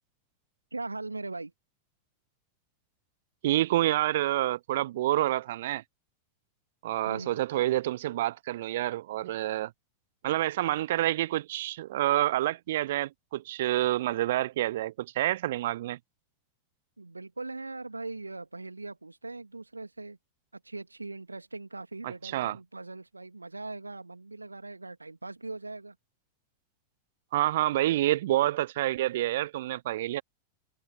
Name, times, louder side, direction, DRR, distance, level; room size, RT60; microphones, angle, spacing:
voice 1, 0.7-1.5 7.0-7.4 17.0-20.2 20.5-26.0, right 3 dB, 80° right, 2.3 m, -40 dB
voice 2, 3.4-5.8 6.8-9.7 10.2-16.0 22.2-22.6 27.3-30.2, right 14 dB, 55° right, 0.7 m, -28 dB
figure-of-eight pair, 90°, 0 cm